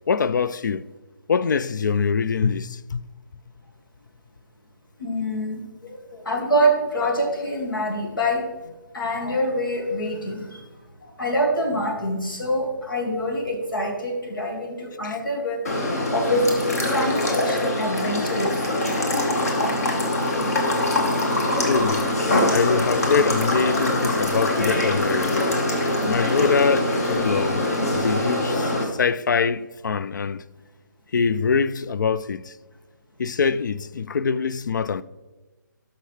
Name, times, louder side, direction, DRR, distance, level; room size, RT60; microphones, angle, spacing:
voice 1, 0.1-0.9 1.3-3.1 15.0-15.2 21.6-22.1 22.5-25.4 26.0-30.4 31.1-32.5 33.2-35.0, left 5 dB, 65° left, 0.4 m, -24 dB
voice 2, 5.0-8.4 8.9-10.6 11.0-15.6 16.1-16.4 16.9-18.7 22.2-22.5, equal, 85° left, 2.0 m, -25 dB
sound 1, 15.6-28.8, left 1 dB, 50° left, 1.5 m, -23 dB
12.0 x 5.7 x 3.2 m
hypercardioid pair, 160°, 11 cm